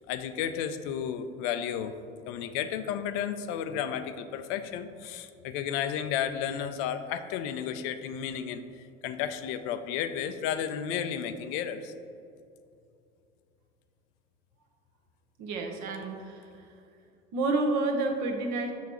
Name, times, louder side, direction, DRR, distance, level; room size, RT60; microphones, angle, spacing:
voice 1, 0.1-1.9 2.3-11.9, left 9 dB, 70° left, 10 dB, 0.5 m, -33 dB
voice 2, 15.4-16.5 17.3-18.7, right 2 dB, 65° right, 3 dB, 1.0 m, -29 dB
7.0 x 5.4 x 3.0 m, 2.5 s
hypercardioid pair, 75°, 30 cm